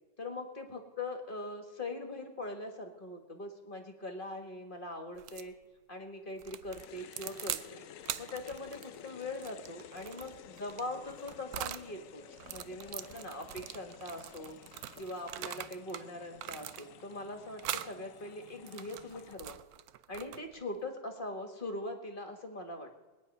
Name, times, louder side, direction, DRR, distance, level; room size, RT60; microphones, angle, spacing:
voice 1, 0.2-5.5 5.9-7.9 8.2-12.2 12.5-14.6 15.0-19.6 20.1-23.0, left 2 dB, 30° left, 4 dB, 1.6 m, -42 dB
sound 1, 5.2-5.5 6.4-7.7 8.0-11.9 12.3-16.1 16.4-17.1 17.6-17.9 18.5-20.6, right 12 dB, 70° right, 0.9 m, -42 dB
sound 2, 6.6-19.3, left 10 dB, 75° left, 0.7 m, -53 dB
21.0 x 9.8 x 5.5 m, 1.2 s
omnidirectional pair, 2.1 m